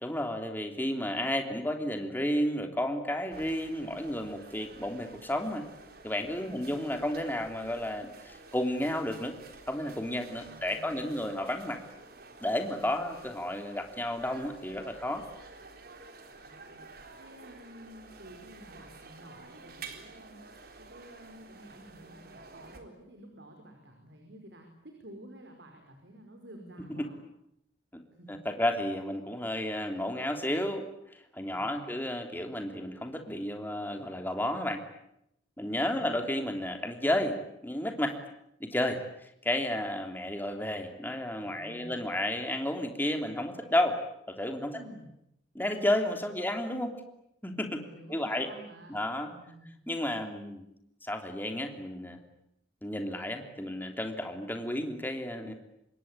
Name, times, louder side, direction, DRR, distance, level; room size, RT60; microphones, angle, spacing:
voice 1, 0.0-5.6 6.0-9.3 9.7-11.8 12.4-15.2 28.3-30.8 31.3-34.8 35.6-37.4 37.6-38.2 38.6-39.0 39.4-44.0 44.3-44.7 45.5-47.0 47.4-47.8 48.1-48.5 48.9-49.3 49.9-50.7 51.0-52.2 52.8-55.5, left 1 dB, 10° left, 5 dB, 3.3 m, -32 dB
sound 1, 3.3-22.8, right 3 dB, 60° right, 4.0 m, -51 dB
voice 2, 6.4-6.7 10.4-11.1 12.8-13.1 16.4-27.2 28.2-28.4 31.5-32.0 35.6-36.1 41.3-42.0 44.6-45.1 47.8-49.7, right 1 dB, 90° right, 3 dB, 5.1 m, -51 dB
26.5 x 22.0 x 9.8 m, 0.80 s
head